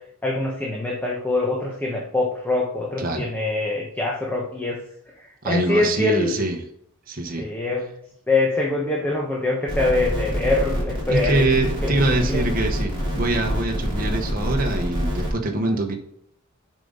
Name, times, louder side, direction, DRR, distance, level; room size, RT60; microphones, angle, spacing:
voice 1, 0.2-4.8 5.2-6.4 7.4-7.9 8.3-12.5 15.7-15.8, left 2 dB, 10° left, -3 dB, 1.0 m, -24 dB
voice 2, 5.4-6.6 7.1-7.5 11.1-16.0, right 2 dB, 40° right, 2 dB, 1.0 m, -24 dB
sound 1, 9.7-15.3, equal, 25° right, 3.2 m, -26 dB
7.6 x 5.2 x 3.9 m, 0.73 s
head